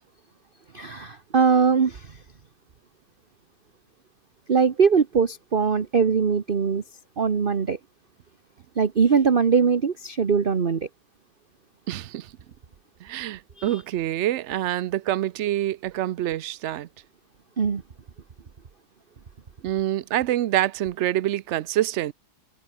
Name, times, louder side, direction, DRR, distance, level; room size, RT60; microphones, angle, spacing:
voice 1, 0.7-2.2 4.5-6.8 7.2-7.8 8.8-10.9 13.6-13.8 17.6-17.8, right 6 dB, 35° right, 1.2 m, -21 dB
voice 2, 11.9-12.3 13.0-16.9 19.6-22.1, right 13 dB, 65° right, 0.7 m, -26 dB
omnidirectional pair, 1.8 m